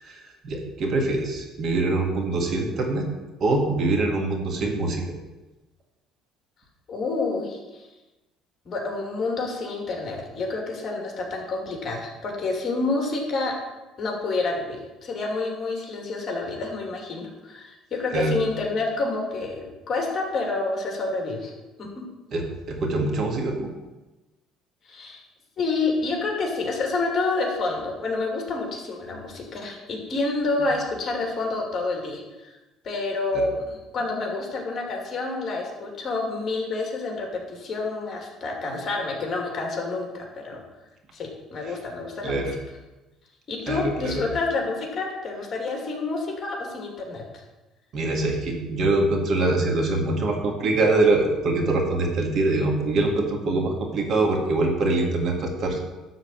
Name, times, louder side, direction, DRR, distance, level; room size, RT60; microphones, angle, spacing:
voice 1, 0.0-3.1 3.4-5.0 18.1-18.4 22.3-23.7 33.3-33.5 41.7-41.8 42.2-42.5 43.7-44.2 47.9-55.8, right 2 dB, 45° right, 2 dB, 1.9 m, -24 dB
voice 2, 6.9-7.8 8.7-13.5 14.0-21.5 21.8-21.9 24.9-25.2 25.6-32.5 32.8-40.6 41.1-42.5 43.5-47.2, left 3 dB, 40° left, 1 dB, 2.5 m, -28 dB
12.0 x 4.0 x 7.5 m, 1.1 s
cardioid pair, 120°, 0 cm